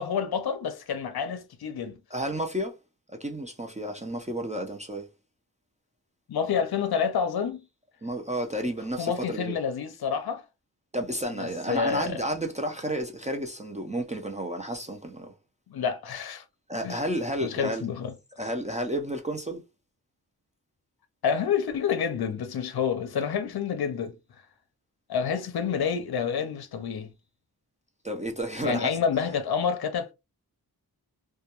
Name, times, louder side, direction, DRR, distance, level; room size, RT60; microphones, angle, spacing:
voice 1, 0.0-2.0 6.3-7.6 9.0-10.4 11.4-12.2 15.7-16.4 16.8-17.0 17.4-18.1 21.2-24.2 25.1-27.1 28.6-30.1, left 7 dB, 70° left, 0.5 m, -28 dB
voice 2, 2.1-2.7 3.2-5.1 8.0-9.5 10.9-15.3 16.7-17.8 18.4-19.6 28.0-29.0, right 1 dB, 20° right, 0.4 m, -31 dB
2.2 x 2.2 x 2.8 m
wide cardioid pair, 80°, 39 cm